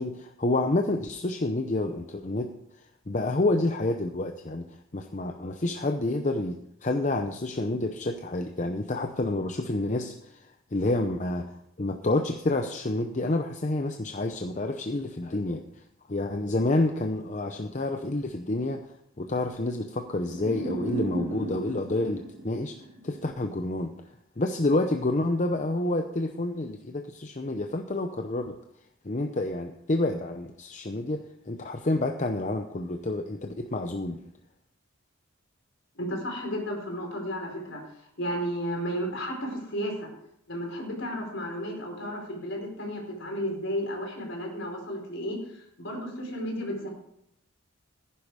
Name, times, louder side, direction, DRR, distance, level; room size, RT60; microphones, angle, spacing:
voice 1, 0.0-2.6 3.1-4.7 4.9-15.6 16.1-18.9 19.2-24.0 24.4-28.6 29.0-34.2, left 2 dB, 35° left, 5 dB, 0.7 m, -29 dB
sound 1, 20.2-23.3, right 1 dB, 80° right, 4.2 m, -36 dB
voice 2, 35.9-37.9 38.2-40.1 40.5-46.9, equal, 65° left, 1 dB, 4.6 m, -33 dB
15.0 x 10.0 x 4.8 m, 0.78 s
head